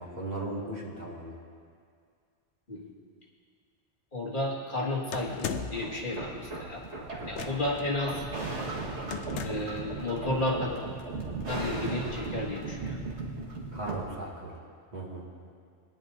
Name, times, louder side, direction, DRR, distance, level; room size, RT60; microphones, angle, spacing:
voice 1, 0.0-1.4 13.7-14.5 14.9-15.3, right 2 dB, 35° right, -5 dB, 2.2 m, -37 dB
voice 2, 4.1-6.8 7.2-8.2 9.4-10.8 11.5-13.0, left 2 dB, 40° left, -4 dB, 2.0 m, -32 dB
sound 1, 5.1-5.9 7.3-7.8 9.1-9.8, left 8 dB, 70° left, 0.9 m, -36 dB
sound 2, 5.5-14.0, right 3 dB, 65° right, 1.9 m, -37 dB
21.5 x 10.5 x 2.6 m, 2.2 s
omnidirectional pair, 1.3 m